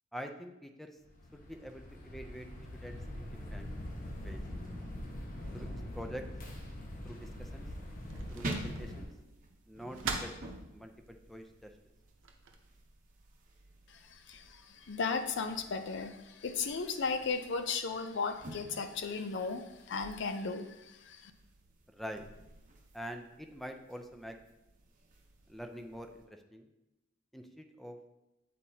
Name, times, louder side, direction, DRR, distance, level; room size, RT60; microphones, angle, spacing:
voice 1, 0.1-1.0 1.3-2.5 2.8-3.7 4.2-4.4 5.5-6.2 7.0-7.7 8.3-9.1 9.7-10.3 10.7-11.7 21.9-22.2 22.9-24.4 25.5-26.7 27.3-28.0, equal, ahead, 5 dB, 0.4 m, -45 dB
sound 1, 1.0-9.1, left 1 dB, 45° left, 1.0 m, -43 dB
sound 2, 6.5-12.6, right 5 dB, 80° right, 0.7 m, -46 dB
sound 3, 7.1-26.3, right 1 dB, 45° right, 0.8 m, -49 dB
voice 2, 14.9-16.1 16.4-20.7, left 4 dB, 65° left, 8 dB, 0.5 m, -35 dB
8.1 x 4.2 x 2.7 m, 0.95 s
head